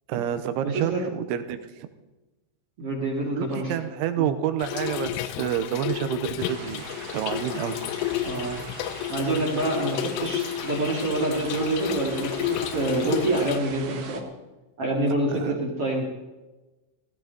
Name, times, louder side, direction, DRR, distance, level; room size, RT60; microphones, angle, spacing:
voice 1, 0.1-1.9 3.4-6.8 7.1-7.8 15.3-15.6, right 10 dB, 85° right, 10 dB, 3.2 m, -28 dB
voice 2, 0.6-1.0 2.8-3.7 4.2-4.3 8.2-8.6 9.1-14.2 14.8-16.0, right 2 dB, 45° right, -2 dB, 2.1 m, -26 dB
Trickle dribble / Fill (with liquid), 4.6-13.6, left 14 dB, 85° left, 3.2 m, -32 dB
sound 1, 6.4-14.2, right 7 dB, 65° right, 2.2 m, -41 dB
16.5 x 15.5 x 4.0 m, 1.1 s
omnidirectional pair, 5.5 m